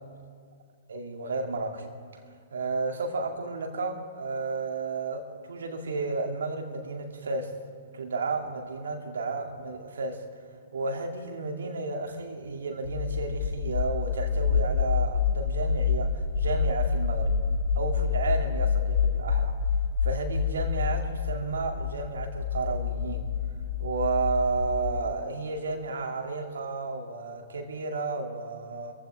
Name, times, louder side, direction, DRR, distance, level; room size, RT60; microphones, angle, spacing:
voice 1, 0.9-1.8 2.5-7.5 7.9-10.2 10.7-17.4 17.7-19.5 20.0-23.3 23.8-28.9, right 3 dB, 65° right, 2.3 m, -32 dB
sound 1, 12.8-25.0, left 6 dB, 65° left, 1.8 m, -28 dB
25.5 x 15.5 x 3.4 m
figure-of-eight pair, 115°, 0 cm